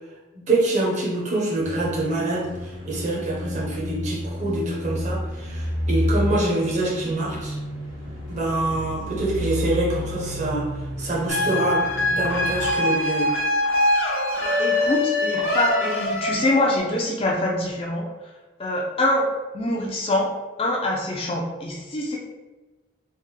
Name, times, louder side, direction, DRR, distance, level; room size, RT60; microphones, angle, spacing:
voice 1, 0.3-7.6 8.3-13.4, right 2 dB, 35° right, -4 dB, 0.7 m, -25 dB
sound 1, 1.6-12.7, equal, 70° right, 1.1 m, -30 dB
sound 2, 11.3-16.8, left 1 dB, 85° left, 0.8 m, -23 dB
voice 2, 14.4-18.1 18.6-19.3 19.5-20.3 20.6-22.2, left 1 dB, 30° left, -2 dB, 0.4 m, -24 dB
3.3 x 2.1 x 3.2 m, 1.2 s
head